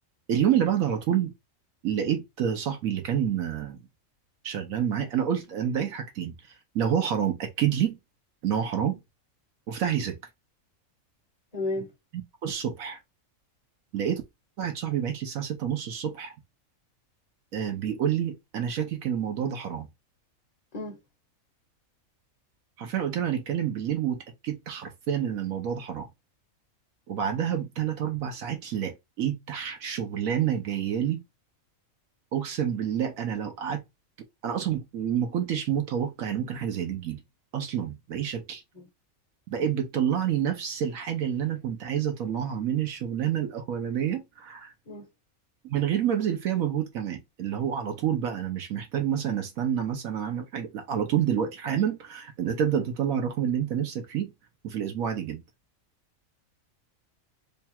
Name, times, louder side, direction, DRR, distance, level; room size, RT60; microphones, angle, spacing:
voice 1, 0.3-1.3 1.8-3.8 4.4-8.0 8.4-8.9 9.7-10.2 12.4-13.0 13.9-14.2 14.6-16.3 17.5-19.9 22.8-26.1 27.1-31.2 32.3-33.8 34.4-37.2 37.5-38.6 39.5-44.7 45.6-54.3 54.6-55.4, right 9 dB, 80° right, 1.2 m, -28 dB
voice 2, 11.5-11.9 20.7-21.0 38.7-38.9 44.9-45.1, left 2 dB, 35° left, 0.7 m, -32 dB
3.4 x 2.3 x 4.1 m
omnidirectional pair, 1.5 m